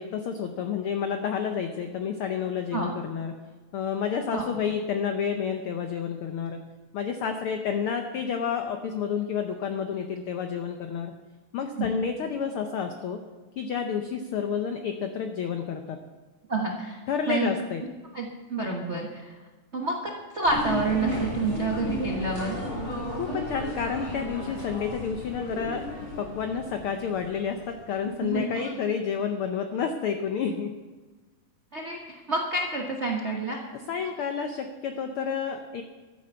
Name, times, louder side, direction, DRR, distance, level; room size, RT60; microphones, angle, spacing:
voice 1, 0.0-3.4 3.7-6.6 6.9-11.1 11.5-13.2 13.6-16.0 17.1-17.8 23.2-25.8 26.2-30.7 33.7-35.8, left 7 dB, 85° left, 6 dB, 1.2 m, -30 dB
voice 2, 16.5-17.5 18.1-19.3 19.7-22.6 28.2-28.8 31.7-33.6, right 3 dB, 60° right, 0 dB, 0.7 m, -29 dB
sound 1, 20.4-27.9, equal, 45° left, 5.6 m, -34 dB
13.0 x 9.7 x 6.8 m, 1.3 s
omnidirectional pair, 3.5 m